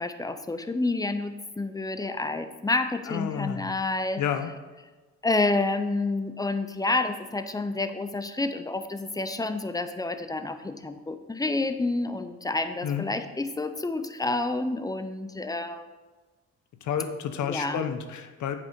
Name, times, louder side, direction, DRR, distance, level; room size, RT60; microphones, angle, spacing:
voice 1, 0.0-4.2 5.2-15.8 17.4-17.9, left 2 dB, 10° left, 9 dB, 0.6 m, -29 dB
voice 2, 3.1-3.7 4.2-4.5 12.8-13.0 16.8-18.6, left 8 dB, 70° left, 8 dB, 0.9 m, -30 dB
8.3 x 5.1 x 5.2 m, 1.3 s
cardioid pair, 90°, 30 cm